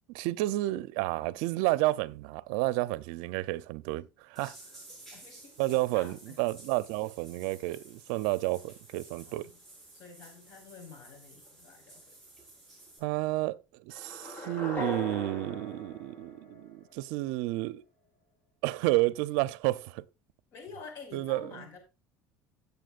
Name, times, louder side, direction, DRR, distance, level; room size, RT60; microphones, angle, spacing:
voice 1, 0.1-4.6 5.6-9.5 13.0-17.8 18.6-20.0 21.1-21.7, right 19 dB, 80° right, 0.5 m, -31 dB
sound 1, 4.4-13.0, right 2 dB, 5° left, 5.8 m, -53 dB
voice 2, 5.1-6.4 9.2-9.5 9.9-12.2 20.5-21.8, left 5 dB, 60° left, 5.1 m, -49 dB
sound 2, 13.9-17.0, equal, 30° left, 3.9 m, -39 dB
17.0 x 6.9 x 2.4 m
cardioid pair, 140°, 6 cm